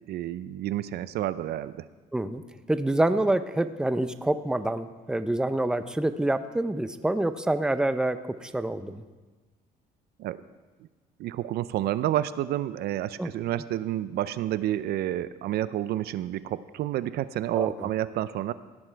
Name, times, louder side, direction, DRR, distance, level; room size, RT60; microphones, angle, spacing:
voice 1, 0.1-1.8 10.2-10.4 11.2-18.5, right 12 dB, 70° right, 15 dB, 0.5 m, -29 dB
voice 2, 2.7-9.0 13.2-13.3 17.6-17.9, right 1 dB, 5° right, 11 dB, 0.6 m, -27 dB
17.5 x 9.8 x 4.6 m, 1.3 s
cardioid pair, 110°, 17 cm